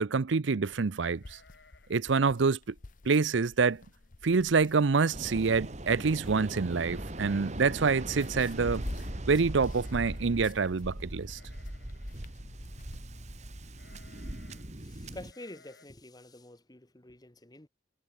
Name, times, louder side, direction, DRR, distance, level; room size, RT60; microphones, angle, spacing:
voice 1, 0.0-1.4 1.9-2.7 3.1-3.8 4.2-8.8 9.3-11.4, right 4 dB, 85° right, 0.6 m, -26 dB
sound 1, 0.7-13.0, left 2 dB, 45° left, 0.8 m, -49 dB
sound 2, 1.1-2.1 2.4-2.5 2.9-3.2 3.8-3.9 4.2-4.7 5.0-5.1 6.2-6.3 6.6-7.0 9.7-10.7 11.3-12.2 13.7-14.7 15.3-15.9, left 4 dB, 65° left, 5.1 m, -61 dB
Waves surf, 5.1-15.3, right 1 dB, 40° right, 2.0 m, -40 dB
voice 2, 14.8-17.7, left 1 dB, 20° left, 1.3 m, -48 dB
head